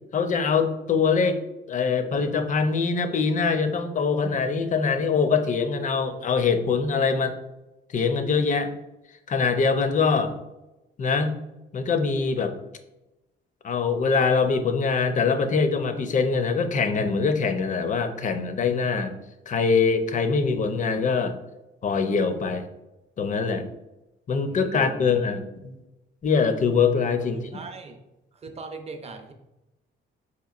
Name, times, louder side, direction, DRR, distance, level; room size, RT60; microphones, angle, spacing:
voice 1, 0.1-1.4 1.7-7.3 7.9-8.7 9.3-10.3 11.0-11.3 11.7-12.5 13.6-19.1 19.5-21.4 21.8-22.6 23.2-23.7 24.3-25.8 26.2-27.4, left 5 dB, 40° left, 8 dB, 0.5 m, -23 dB
voice 2, 24.4-25.4 27.2-28.0 28.3-29.3, right 3 dB, 30° right, 5 dB, 0.6 m, -40 dB
4.8 x 2.9 x 2.4 m, 0.98 s
cardioid pair, 90°, 20 cm